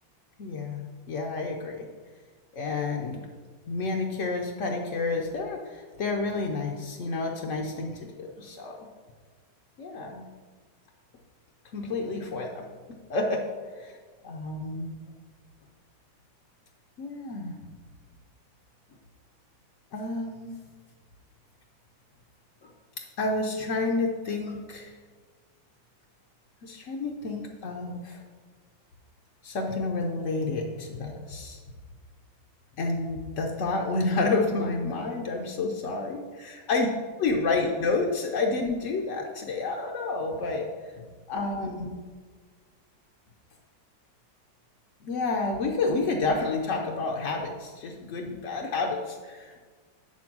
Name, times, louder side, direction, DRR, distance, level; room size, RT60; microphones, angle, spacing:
voice 1, 0.4-1.9 2.5-3.2 3.7-8.9 9.8-10.3 11.7-12.7 13.1-13.4 13.7-14.0 14.2-14.9 17.0-17.5 19.9-20.6 22.6-22.7 23.2-25.0 26.6-28.2 29.4-31.6 32.8-36.9 37.2-41.9 45.0-49.6, left 3 dB, 60° left, 0 dB, 0.8 m, -30 dB
8.6 x 4.3 x 6.0 m, 1.5 s
omnidirectional pair, 2.1 m